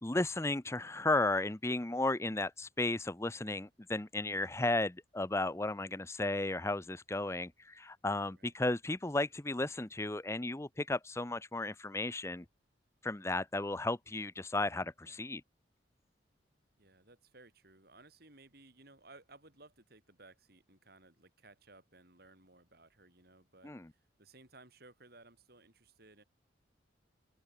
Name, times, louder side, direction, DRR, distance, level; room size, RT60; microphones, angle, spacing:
voice 1, 0.0-12.4 13.0-15.4 23.6-23.9, left 2 dB, 15° left, 0.6 m, -34 dB
voice 2, 8.3-8.6 15.0-15.2 16.8-26.2, right 2 dB, 55° right, 5.5 m, -60 dB
open air
head